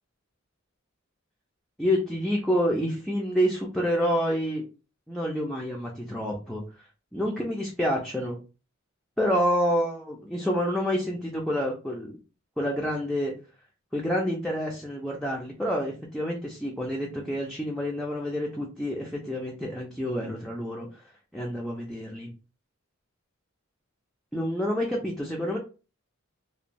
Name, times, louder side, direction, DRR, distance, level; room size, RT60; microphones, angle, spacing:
voice 1, 1.8-4.6 5.1-6.6 7.1-8.4 9.2-12.2 12.6-13.3 13.9-20.9 21.3-22.3 24.3-25.6, equal, ahead, -2 dB, 0.4 m, -28 dB
3.0 x 2.2 x 2.5 m, 0.33 s
head